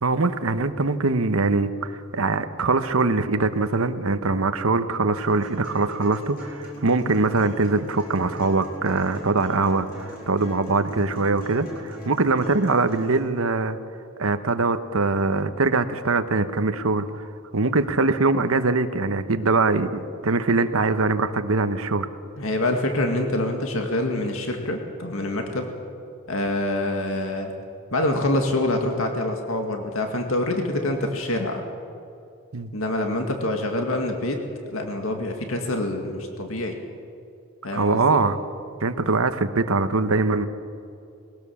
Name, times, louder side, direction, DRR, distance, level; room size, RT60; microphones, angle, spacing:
voice 1, 0.0-13.8 14.2-17.3 17.5-22.1 32.5-32.7 37.7-38.4 38.8-40.5, right 3 dB, 85° right, 10 dB, 1.0 m, -22 dB
sound 1, 5.2-13.2, equal, 50° left, 6.9 m, -40 dB
voice 2, 22.4-25.7 26.3-27.5 27.9-31.6 32.7-34.4 34.7-36.8 37.6-38.2, left 1 dB, 75° left, 3 dB, 2.1 m, -26 dB
21.0 x 17.5 x 7.1 m, 2.6 s
head